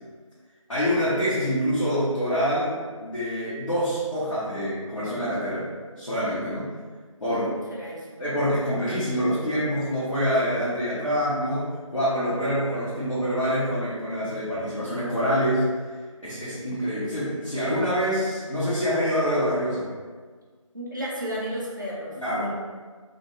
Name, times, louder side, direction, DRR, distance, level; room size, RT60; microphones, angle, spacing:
voice 1, 0.7-2.8 3.0-5.7 6.0-6.7 7.2-7.4 8.2-15.6 16.2-19.9 22.2-22.5, equal, 70° left, -13 dB, 1.2 m, -26 dB
voice 2, 7.2-8.1 20.7-22.5, equal, 35° right, -6 dB, 0.6 m, -33 dB
2.5 x 2.2 x 2.9 m, 1.5 s
figure-of-eight pair, 175°, 18 cm